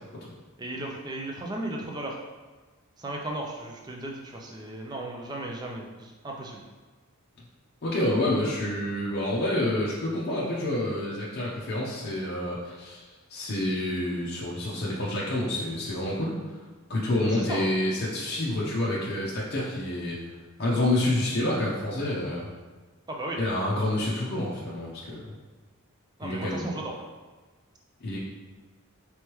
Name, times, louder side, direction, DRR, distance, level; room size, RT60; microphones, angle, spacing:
voice 1, 0.6-2.2 3.0-6.6 17.2-17.7 23.1-23.4 26.2-26.9, right 1 dB, 20° right, 0 dB, 0.4 m, -35 dB
voice 2, 7.8-13.0 13.3-16.4 16.9-20.2 20.6-22.5 23.4-25.2 26.2-26.7 28.0-28.2, left 1 dB, 50° left, -6 dB, 0.6 m, -28 dB
3.4 x 3.2 x 3.0 m, 1.3 s
head